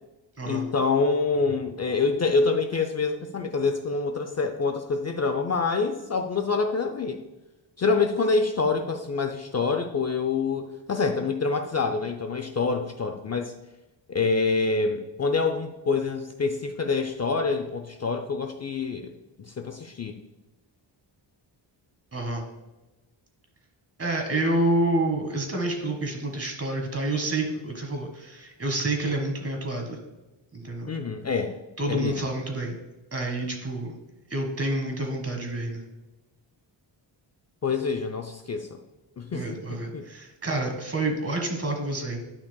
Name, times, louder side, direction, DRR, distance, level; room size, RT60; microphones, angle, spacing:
voice 1, 0.5-7.2 7.8-13.5 14.1-20.2 30.9-31.6 31.9-32.2 37.6-38.8 39.2-40.0, left 4 dB, 35° left, 5 dB, 0.6 m, -26 dB
voice 2, 22.1-22.4 24.0-30.0 30.5-30.9 31.8-32.8 33.1-33.9 34.3-35.8 39.3-42.2, right 2 dB, 30° right, 3 dB, 1.7 m, -28 dB
10.5 x 5.8 x 2.3 m, 1.1 s
wide cardioid pair, 105°, 45 cm